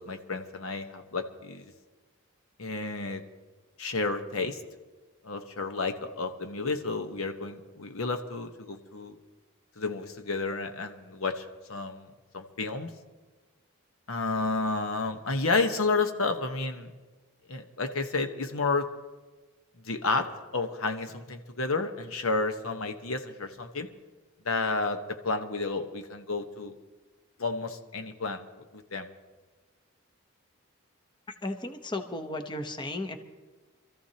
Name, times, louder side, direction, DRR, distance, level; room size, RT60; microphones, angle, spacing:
voice 1, 0.0-1.6 2.6-3.2 3.8-4.6 5.2-9.2 9.8-12.1 12.3-12.9 14.1-16.9 17.5-18.9 19.8-23.9 24.4-26.8 27.4-28.4 28.7-29.1, left 3 dB, 75° left, 6 dB, 1.2 m, -31 dB
voice 2, 31.4-33.2, left 2 dB, 20° left, 6 dB, 0.9 m, -34 dB
26.5 x 14.0 x 2.9 m, 1.3 s
head